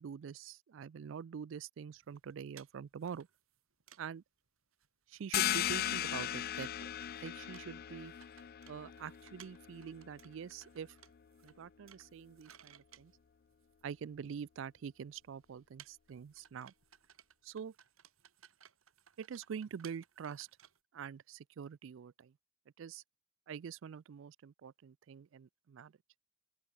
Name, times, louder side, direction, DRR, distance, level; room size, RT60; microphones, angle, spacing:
voice 1, 0.0-3.3 4.0-4.2 5.1-6.9 7.2-8.1 8.7-11.0 11.4-13.1 13.8-16.7 17.4-17.7 19.2-20.5 20.9-22.3 22.8-23.0 23.5-25.9, right 7 dB, 65° right, 0.3 m, -45 dB
sound 1, 1.9-4.2 4.5-4.6 4.7-4.9 5.1-6.2 6.5-6.6 6.9-14.1 14.8-14.9 15.2-20.8, right 10 dB, 85° right, 1.4 m, -62 dB
sound 2, 5.3-10.7, left 12 dB, 45° left, 0.3 m, -38 dB
open air
head